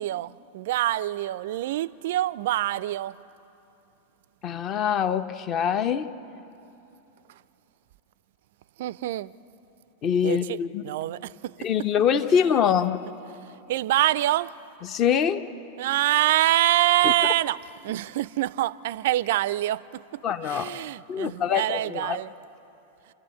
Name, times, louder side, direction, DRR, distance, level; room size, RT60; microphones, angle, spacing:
voice 1, 0.0-3.2 8.8-9.3 10.2-10.6 10.8-11.5 13.7-14.5 15.8-17.6 17.8-22.3, right 15 dB, 55° right, 0.4 m, -25 dB
voice 2, 4.4-6.1 10.0-10.9 11.6-13.0 14.8-15.4 17.0-17.1 20.2-20.7 21.1-22.2, left 8 dB, 35° left, 0.9 m, -24 dB
28.0 x 12.0 x 9.4 m
figure-of-eight pair, 90°, 0 cm